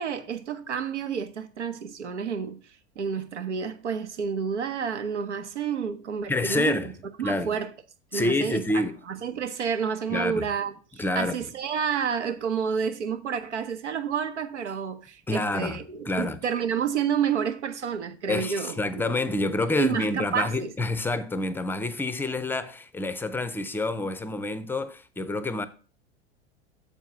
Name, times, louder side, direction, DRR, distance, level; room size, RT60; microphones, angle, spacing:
voice 1, 0.0-2.6 3.0-6.9 7.2-7.7 8.1-19.1 19.8-20.7, right 7 dB, 80° right, 0.9 m, -30 dB
voice 2, 6.3-6.9 7.2-7.5 8.1-8.9 10.1-10.4 11.0-11.3 15.3-16.4 18.3-25.7, left 2 dB, 5° left, 0.5 m, -28 dB
6.9 x 4.5 x 6.0 m
hypercardioid pair, 90°, 34 cm